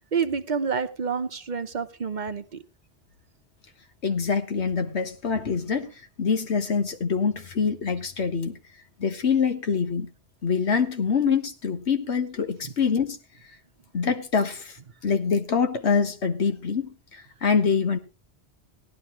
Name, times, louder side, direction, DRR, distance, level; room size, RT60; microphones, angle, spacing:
voice 1, 0.1-2.6 12.6-12.7, right 6 dB, 50° right, 0.9 m, -28 dB
voice 2, 4.0-5.9 6.2-8.6 9.0-10.1 10.4-13.2 13.9-14.8 15.0-18.0, left 6 dB, 90° left, 1.6 m, -25 dB
17.5 x 11.0 x 3.1 m
omnidirectional pair, 1.1 m